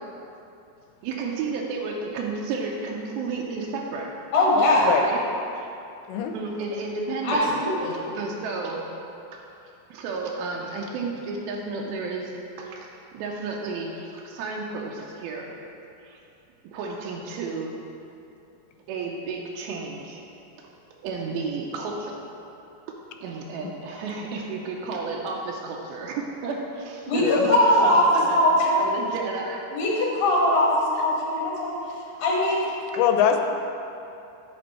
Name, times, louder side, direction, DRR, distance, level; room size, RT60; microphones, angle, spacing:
voice 1, 1.0-4.1 5.0-5.3 5.5-5.7 6.3-7.5 7.8-8.9 9.9-12.3 12.6-12.9 13.1-15.5 16.0-16.2 16.7-17.8 18.9-20.2 20.6-20.7 21.0-22.2 23.2-27.5 27.9-28.4 28.8-29.6 30.0-30.1 30.9-31.0, right 4 dB, 90° right, -1 dB, 2.2 m, -32 dB
voice 2, 4.3-4.9 7.2-7.9 27.1-28.0 28.4-28.8 29.7-31.8 32.2-32.6, left 1 dB, 65° left, -4 dB, 2.9 m, -21 dB
voice 3, 33.0-33.4, left 9 dB, 85° left, 5 dB, 2.8 m, -22 dB
10.5 x 4.3 x 4.3 m, 2.7 s
omnidirectional pair, 4.9 m